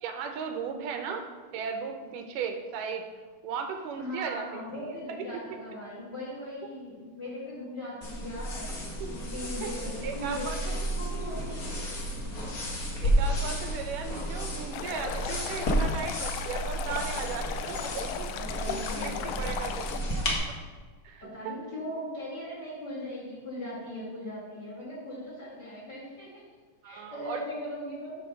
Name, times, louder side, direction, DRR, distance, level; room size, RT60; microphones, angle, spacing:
voice 1, 0.0-1.3 1.5-3.1 3.4-4.9 5.3-5.4 9.0-9.1 9.6-9.7 10.0-10.8 13.0-18.3 18.7-19.8 20.1-20.6 21.0-21.5 26.8-27.4, right 6 dB, 85° right, 5 dB, 2.3 m, -36 dB
voice 2, 4.0-8.7 9.1-11.7 12.1-12.3 18.3-19.3 21.2-26.3 26.8-28.2, left 1 dB, 35° left, -7 dB, 2.7 m, -39 dB
sound 1, 8.0-20.4, equal, 55° left, 1.0 m, -32 dB
Stream, 14.7-20.0, left 9 dB, 85° left, 1.6 m, -36 dB
8.3 x 4.4 x 5.9 m, 1.4 s
omnidirectional pair, 3.7 m